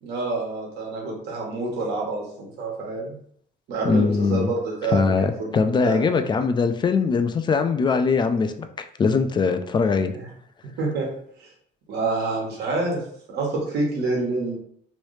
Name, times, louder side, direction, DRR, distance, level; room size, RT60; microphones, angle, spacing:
voice 1, 0.0-3.2 3.7-5.5 5.8-6.0 10.1-10.2 10.8-11.1 11.4-11.5 11.9-13.0 13.3-14.6, right 3 dB, 75° right, -2 dB, 1.3 m, -27 dB
voice 2, 3.8-4.5 4.9-10.1, left 4 dB, 25° left, 8 dB, 0.3 m, -21 dB
3.1 x 2.6 x 3.2 m, 0.64 s
cardioid pair, 110°, 17 cm